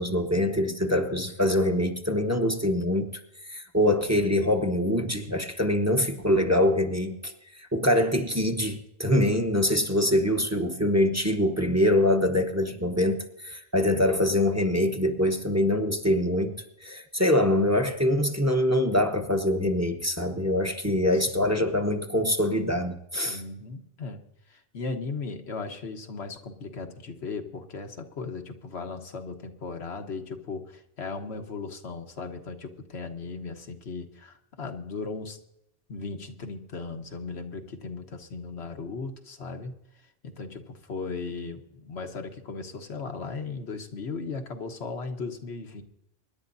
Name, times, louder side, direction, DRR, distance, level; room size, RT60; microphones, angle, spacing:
voice 1, 0.0-23.4, left 1 dB, 15° right, 5 dB, 1.0 m, -24 dB
voice 2, 20.9-21.5 23.2-35.4 35.9-39.7 40.2-45.8, left 4 dB, 90° left, 5 dB, 1.5 m, -37 dB
25.0 x 11.0 x 2.7 m, 0.83 s
omnidirectional pair, 1.1 m